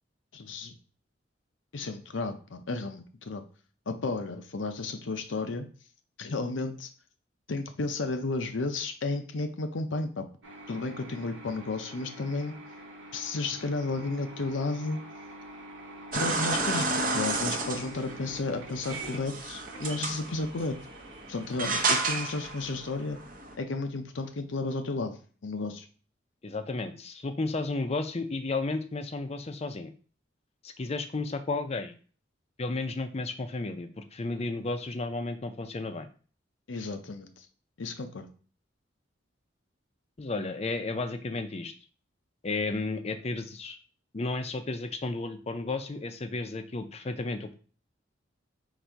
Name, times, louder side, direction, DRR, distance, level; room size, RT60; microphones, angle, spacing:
voice 1, 0.3-0.7 1.7-3.4 3.9-5.7 6.2-6.9 7.5-10.3 10.7-12.5 13.1-15.0 16.1-20.8 21.3-23.2 23.5-25.2 25.4-25.8 36.7-37.3 37.8-38.3, left 3 dB, 85° left, 7 dB, 0.6 m, -33 dB
sound 1, 10.4-22.5, right 2 dB, 85° right, 1.0 m, -46 dB
sound 2, 16.1-23.5, right 3 dB, 45° right, 0.7 m, -32 dB
voice 2, 26.4-29.9 30.6-31.9 32.6-36.1 40.2-41.7 42.4-43.8 44.1-47.5, left 3 dB, 35° left, 8 dB, 0.5 m, -33 dB
4.0 x 2.6 x 4.5 m, 0.40 s
head